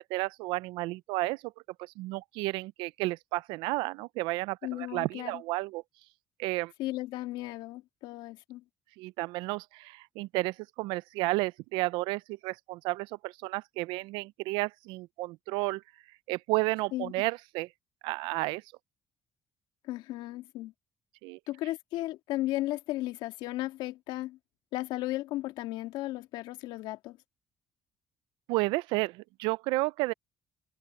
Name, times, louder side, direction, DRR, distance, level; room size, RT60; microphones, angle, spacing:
voice 1, 0.0-1.5 1.8-5.8 6.4-6.7 9.0-15.8 16.3-17.7 18.0-18.6 21.2-21.4 28.5-30.1, right 22 dB, 80° right, 0.5 m, -32 dB
voice 2, 4.6-5.4 6.8-8.6 16.9-17.1 19.8-20.7 21.5-24.4 24.7-27.2, left 17 dB, 80° left, 2.6 m, -35 dB
supercardioid pair, 65°, 8 cm